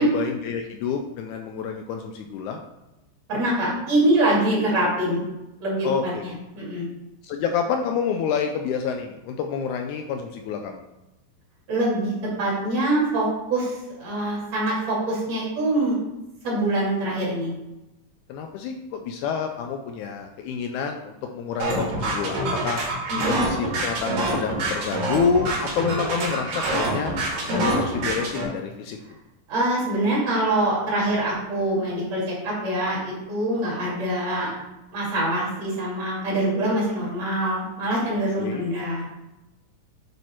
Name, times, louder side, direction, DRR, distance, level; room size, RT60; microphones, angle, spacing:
voice 1, 0.0-2.6 5.8-6.3 7.2-10.8 18.3-22.8 23.3-27.1 27.5-29.0 38.4-38.7, left 6 dB, 80° left, 4 dB, 1.8 m, -28 dB
voice 2, 3.3-5.2 5.6-6.9 11.7-12.1 12.4-16.0 16.4-17.5 23.1-23.4 27.5-27.8 29.5-34.5 34.9-39.0, right 1 dB, 55° right, -6 dB, 3.4 m, -24 dB
sound 1, 21.6-28.4, right 2 dB, 90° right, 3.9 m, -26 dB
9.1 x 3.3 x 4.3 m, 0.97 s
omnidirectional pair, 3.7 m